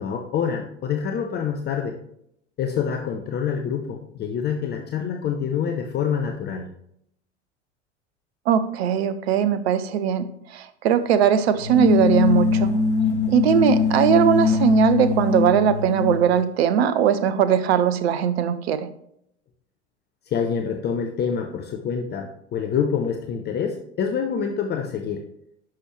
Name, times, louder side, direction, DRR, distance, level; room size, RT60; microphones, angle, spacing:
voice 1, 0.0-2.0 2.6-6.7 20.3-25.2, left 7 dB, 30° left, 5 dB, 0.8 m, -26 dB
voice 2, 8.5-10.3 10.5-12.7 13.3-18.9, right 8 dB, 60° right, 12 dB, 0.8 m, -20 dB
sound 1, 11.6-16.3, left 5 dB, 70° left, 0.9 m, -22 dB
10.5 x 6.3 x 3.1 m, 0.73 s
figure-of-eight pair, 80°, 35 cm